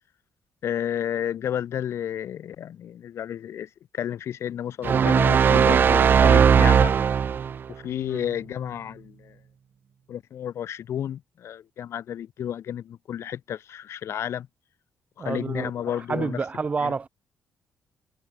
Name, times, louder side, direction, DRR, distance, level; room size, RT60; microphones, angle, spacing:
voice 1, 0.6-6.9 7.7-9.3 10.1-14.5 15.2-16.4 16.8-16.9, left 10 dB, 60° left, 5.7 m, -31 dB
sound 1, 4.8-7.6, right 7 dB, 40° right, 1.2 m, -18 dB
voice 2, 15.2-15.7 16.1-17.1, right 4 dB, 25° right, 1.6 m, -28 dB
cardioid pair, 160°, 5 cm